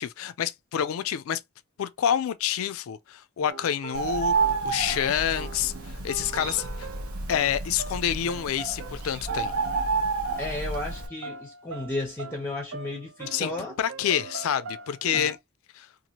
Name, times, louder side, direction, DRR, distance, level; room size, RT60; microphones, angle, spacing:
voice 1, 0.0-1.4 1.8-4.3 4.6-6.9 7.3-9.5 13.3-13.5 13.8-15.4 15.7-15.9, left 9 dB, 70° left, 0.3 m, -28 dB
sound 1, 3.5-10.0 10.3-10.5 10.7-15.4, right 4 dB, 65° right, 0.4 m, -42 dB
Bird, 3.9-11.1, right 4 dB, 85° right, 0.9 m, -30 dB
voice 2, 10.4-13.8 15.0-15.2, left 2 dB, 10° left, 0.6 m, -34 dB
2.9 x 2.4 x 2.7 m
head